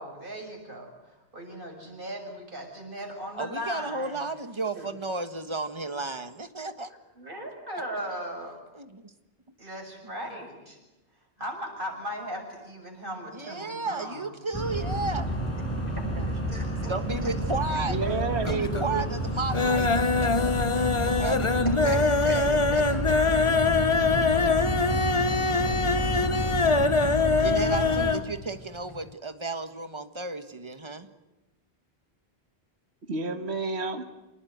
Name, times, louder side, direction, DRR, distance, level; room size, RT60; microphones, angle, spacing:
voice 1, 0.0-4.2 4.8-4.9 7.2-8.6 9.6-10.8 11.4-14.2 15.8-16.9 18.0-18.1 21.7-22.4 22.7-23.6, equal, 50° right, 2 dB, 7.0 m, -38 dB
voice 2, 3.4-6.9 8.7-9.1 10.2-10.3 13.3-15.4 16.0-16.3 16.9-18.0 18.5-20.7 21.0-22.0 22.3-22.6 24.1-24.7 26.0-26.4 27.3-31.1, right 3 dB, 25° right, 9 dB, 1.5 m, -34 dB
sound 1, 14.5-28.1, right 1 dB, 15° left, 7.0 m, -30 dB
sound 2, 17.5-18.1 18.4-18.9 19.2-28.3 28.6-28.7 29.0-29.1, left 4 dB, 30° left, 1.0 m, -24 dB
voice 3, 17.9-19.1 33.1-34.0, right 4 dB, 75° right, 6 dB, 1.9 m, -30 dB
28.0 x 19.0 x 9.4 m, 1.1 s
omnidirectional pair, 1.1 m